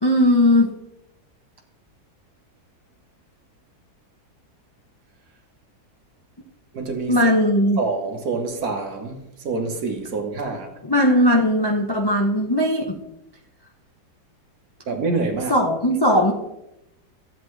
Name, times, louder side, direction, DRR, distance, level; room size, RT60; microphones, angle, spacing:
voice 1, 0.0-0.7 7.1-7.8 10.8-13.0 15.5-16.3, left 1 dB, 25° left, 0.5 m, -18 dB
voice 2, 6.7-7.2 7.8-10.7 14.9-15.5, right 3 dB, 55° right, 1.7 m, -26 dB
13.5 x 8.2 x 3.3 m
omnidirectional pair, 2.0 m